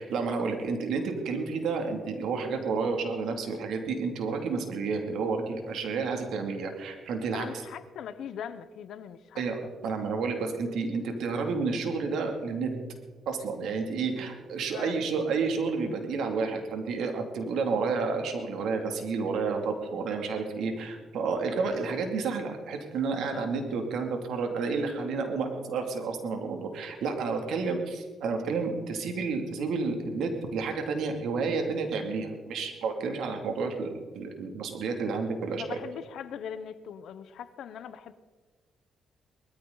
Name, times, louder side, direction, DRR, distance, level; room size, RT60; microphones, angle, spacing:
voice 1, 0.0-7.5 9.4-9.6 9.8-12.8 13.3-35.8, right 4 dB, 75° right, 2.6 m, -30 dB
voice 2, 7.3-9.4 14.7-15.0 23.3-23.6 27.6-27.7 35.5-38.1, left 8 dB, 75° left, 0.9 m, -41 dB
20.0 x 14.0 x 4.0 m
cardioid pair, 90°, 0 cm